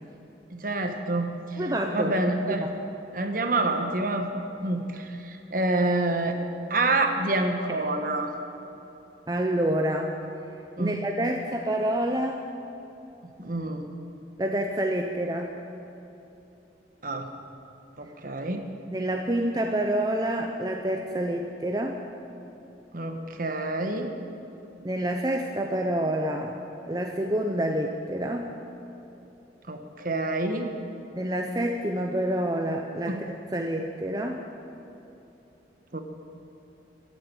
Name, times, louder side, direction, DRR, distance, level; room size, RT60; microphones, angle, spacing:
voice 1, 0.5-1.6 1.9-2.7 3.1-4.3 4.6-6.4 6.7-8.3 10.8-11.0 13.4-13.9 17.0-17.3 18.0-18.7 22.9-24.1 29.7-30.7 33.1-33.2 35.9-36.0, right 2 dB, 50° right, 5 dB, 1.2 m, -27 dB
voice 2, 1.6-2.1 2.5-2.7 9.3-10.2 10.8-12.4 14.4-15.5 18.9-22.0 24.8-26.6 26.9-28.6 31.2-33.2 33.5-34.4, right 1 dB, 20° right, 2 dB, 0.6 m, -27 dB
14.5 x 8.6 x 9.0 m, 2.9 s
head